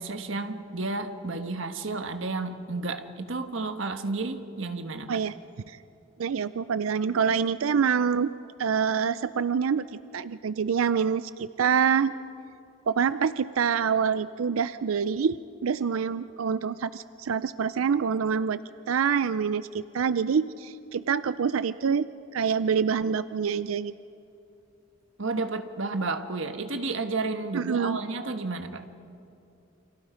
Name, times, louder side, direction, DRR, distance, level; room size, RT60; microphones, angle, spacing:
voice 1, 0.0-5.2 25.2-28.8, right 3 dB, 65° right, 7 dB, 1.4 m, -32 dB
voice 2, 6.2-8.3 8.6-12.1 12.9-18.6 18.9-22.1 22.3-23.9 27.5-28.0, right 6 dB, 80° right, 14 dB, 0.5 m, -26 dB
29.5 x 26.5 x 5.1 m, 2.8 s
head